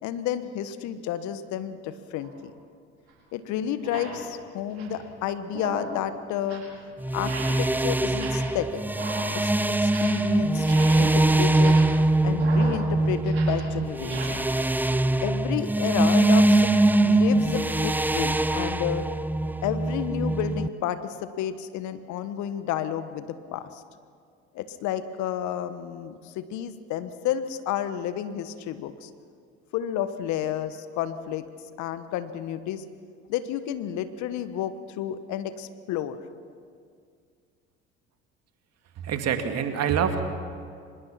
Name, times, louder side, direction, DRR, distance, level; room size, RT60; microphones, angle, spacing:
voice 1, 0.0-2.5 3.3-6.6 7.1-8.8 9.3-9.5 9.8-11.8 12.2-14.5 15.2-16.7 17.0-19.0 19.6-23.8 24.5-29.1 29.7-31.4 31.8-32.8 33.3-36.2, left 10 dB, 60° left, 11 dB, 1.4 m, -31 dB
sound 1, 2.2-2.4 3.1-3.2 3.7-4.2 4.6-5.0 5.4-6.0 6.3-6.8 7.2-7.7 8.0-8.6 8.9-10.3 10.5-14.2, right 3 dB, 85° right, 5.4 m, -38 dB
sound 2, 7.0-20.7, right 2 dB, 5° right, 0.6 m, -22 dB
voice 2, 39.0-40.2, right 8 dB, 50° right, 6 dB, 2.3 m, -26 dB
24.5 x 21.0 x 5.9 m, 2.2 s
hypercardioid pair, 65°, 32 cm